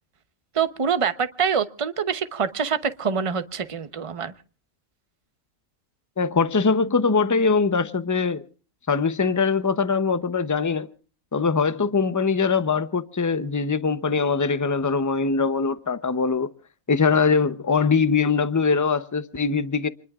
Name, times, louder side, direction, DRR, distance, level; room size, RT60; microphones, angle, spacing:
voice 1, 0.5-4.3, right 6 dB, 25° right, 0.8 m, -25 dB
voice 2, 6.2-8.4 8.9-10.9 11.3-16.5 16.9-19.9, left 5 dB, 25° left, 0.4 m, -22 dB
28.0 x 20.5 x 2.4 m
omnidirectional pair, 1.5 m